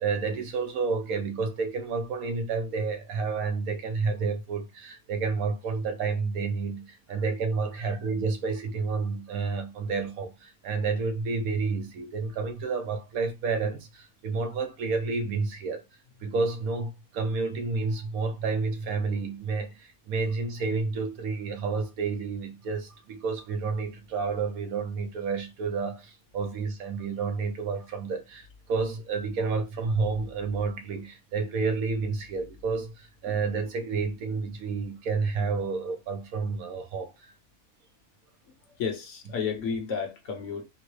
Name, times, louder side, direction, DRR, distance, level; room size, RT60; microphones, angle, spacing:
voice 1, 0.0-15.8 16.2-37.1, right 4 dB, 80° right, 1.2 m, -30 dB
voice 2, 38.8-40.6, left 6 dB, 60° left, 1.0 m, -32 dB
3.8 x 2.1 x 3.1 m
omnidirectional pair, 1.5 m